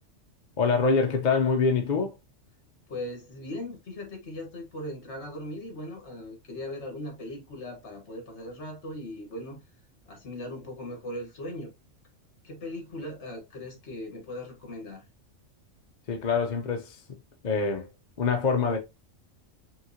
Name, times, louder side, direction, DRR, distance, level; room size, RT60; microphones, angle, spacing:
voice 1, 0.6-2.1 16.1-17.0 17.4-17.9 18.2-18.8, left 4 dB, 45° left, 0.7 m, -25 dB
voice 2, 2.9-9.6 10.1-11.7 12.4-15.0, left 1 dB, 60° left, 1.7 m, -39 dB
5.6 x 2.9 x 2.8 m
omnidirectional pair, 1.3 m